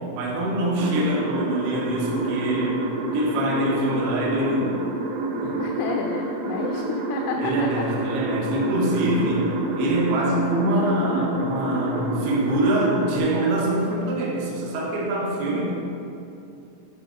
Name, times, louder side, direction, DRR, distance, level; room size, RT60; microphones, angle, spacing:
voice 1, 0.2-4.8 5.4-5.6 7.4-15.7, right 1 dB, 70° right, -3 dB, 2.6 m, -24 dB
sound 1, 0.8-13.2, right 2 dB, 90° right, 3.2 m, -28 dB
voice 2, 5.6-8.1, left 5 dB, 85° left, 2 dB, 2.5 m, -30 dB
9.4 x 4.3 x 4.9 m, 2.7 s
omnidirectional pair, 5.4 m